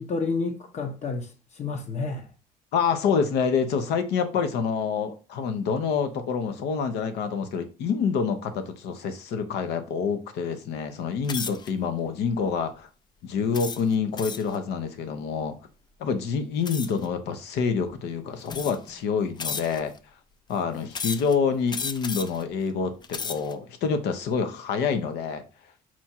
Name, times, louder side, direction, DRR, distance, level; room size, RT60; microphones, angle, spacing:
voice 1, 0.0-2.3, left 4 dB, 40° left, 0.8 m, -30 dB
voice 2, 2.7-12.9 13.2-15.5 16.0-19.9 20.5-25.4, left 6 dB, 80° left, 0.8 m, -27 dB
sound 1, 11.2-11.7 12.3-12.6 13.5-14.6 16.6-17.0 17.9-18.0 18.4-18.9 19.4-20.0 20.9-21.3 21.7-22.4 22.9-23.5, left 5 dB, 25° left, 0.4 m, -34 dB
4.4 x 2.4 x 4.3 m
cardioid pair, 110°, 17 cm